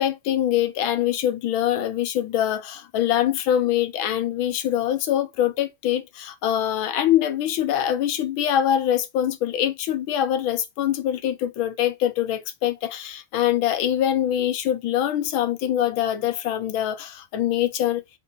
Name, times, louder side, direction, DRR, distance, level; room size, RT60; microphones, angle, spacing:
voice 1, 0.0-18.0, left 11 dB, 70° left, 1.4 m, -24 dB
4.5 x 2.9 x 4.0 m
omnidirectional pair, 2.4 m